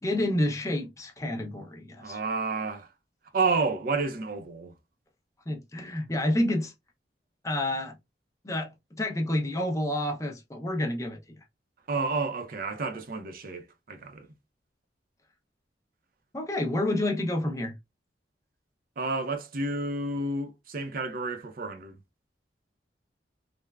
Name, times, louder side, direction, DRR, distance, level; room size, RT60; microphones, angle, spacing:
voice 1, 0.0-2.2 5.5-6.7 7.4-7.9 8.4-8.7 9.0-11.2 16.3-17.7, left 1 dB, 20° left, 0.6 m, -29 dB
voice 2, 2.0-2.9 3.3-4.7 11.9-14.3 19.0-22.0, right 3 dB, 55° right, 0.5 m, -30 dB
3.2 x 2.1 x 2.3 m
head